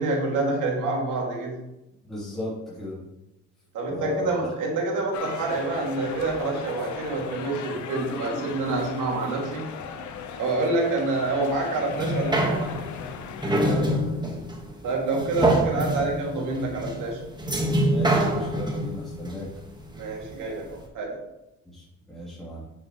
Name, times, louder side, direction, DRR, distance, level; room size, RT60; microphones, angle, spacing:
voice 1, 0.0-1.6 3.7-9.7 10.4-12.6 14.8-17.2 19.9-21.2, right 2 dB, 85° right, -1 dB, 2.4 m, -27 dB
voice 2, 2.0-3.0 3.9-4.5 8.1-8.4 13.5-14.1 17.8-19.5 21.6-22.6, left 1 dB, ahead, -9 dB, 3.2 m, -35 dB
sound 1, 5.1-13.7, left 6 dB, 75° left, 0.9 m, -38 dB
sound 2, 11.9-20.4 20.8-20.9, right 1 dB, 15° right, 1.5 m, -26 dB
8.4 x 7.6 x 3.1 m, 0.92 s
cardioid pair, 90°, 30 cm